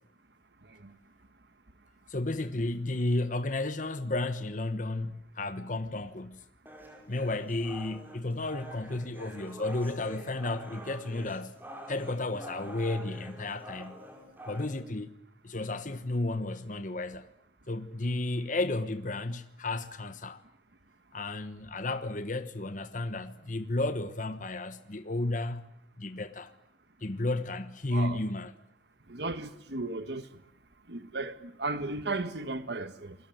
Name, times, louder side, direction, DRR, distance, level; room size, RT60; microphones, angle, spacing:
voice 1, 2.1-6.4 7.1-11.5 11.9-14.0 14.5-15.1 15.4-17.3 17.7-20.4 21.1-25.6 26.0-26.5 27.0-28.5, left 2 dB, 45° left, 1.2 m, -33 dB
sound 1, 6.7-14.7, equal, 10° right, 5.3 m, -47 dB
voice 2, 29.1-30.2 30.9-33.2, right 3 dB, 65° right, 1.6 m, -35 dB
28.5 x 22.0 x 9.1 m
head